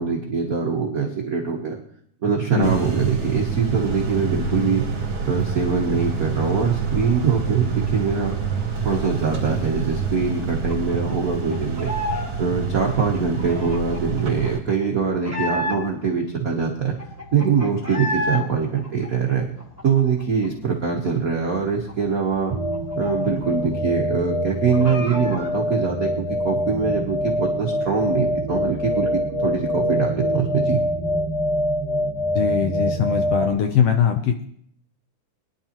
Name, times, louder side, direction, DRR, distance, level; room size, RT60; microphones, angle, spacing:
voice 1, 0.0-1.8 2.2-4.9 5.2-8.4 8.8-11.9 12.4-17.0 17.3-19.5 19.8-22.6 23.0-30.8, right 5 dB, 75° right, -1 dB, 0.8 m, -23 dB
sound 1, 2.6-14.6, right 6 dB, 45° right, 3.3 m, -27 dB
sound 2, 10.7-12.3 12.6-16.1 16.5-16.6 16.8-18.4 18.7-20.5 20.8-20.9 21.2-23.7 23.9-24.0 24.4-25.5, left 1 dB, 10° left, 0.8 m, -31 dB
sound 3, 22.5-33.6, equal, 20° right, 0.8 m, -24 dB
voice 2, 32.3-34.5, left 8 dB, 75° left, 5 dB, 1.4 m, -21 dB
22.5 x 10.5 x 3.0 m, 0.67 s
omnidirectional pair, 3.6 m